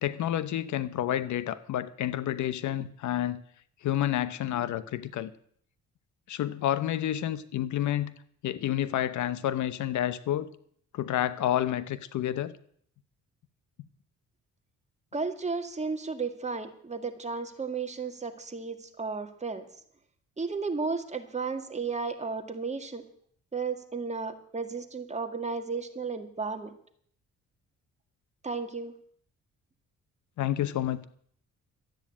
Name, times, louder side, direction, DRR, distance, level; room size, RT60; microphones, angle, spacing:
voice 1, 0.0-3.4 3.8-5.3 6.3-8.1 8.4-10.5 10.9-12.5 30.4-31.0, left 12 dB, 75° left, 15 dB, 0.9 m, -29 dB
voice 2, 15.1-19.7 20.4-23.0 23.5-26.7 28.4-28.9, right 4 dB, 25° right, 6 dB, 2.0 m, -33 dB
13.0 x 9.1 x 8.5 m, 0.62 s
cardioid pair, 90°, 30 cm